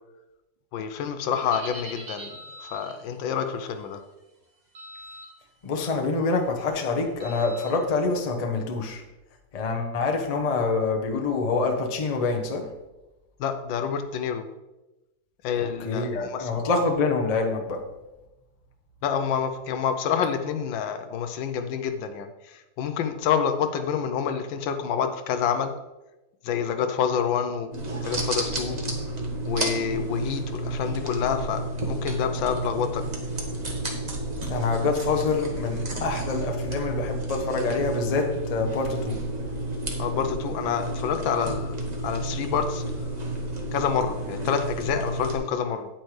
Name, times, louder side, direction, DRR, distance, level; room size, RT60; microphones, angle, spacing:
voice 1, 0.7-2.3 2.6-4.0 13.4-14.5 15.4-16.7 19.0-25.7 26.4-27.7 28.0-28.8 29.4-33.0 40.0-42.8 43.7-45.9, left 7 dB, 80° left, 8 dB, 1.4 m, -28 dB
sound 1, 1.3-3.0 4.8-5.3 5.7-6.0 7.2-7.7, right 1 dB, 55° right, 2.4 m, -42 dB
voice 2, 5.6-9.0 9.5-12.7 15.6-17.8 34.5-39.2, left 4 dB, 30° left, 3 dB, 0.7 m, -26 dB
sound 2, 27.7-45.4, right 1 dB, 25° right, 1.0 m, -31 dB
9.1 x 8.7 x 3.2 m, 1.0 s
omnidirectional pair, 2.1 m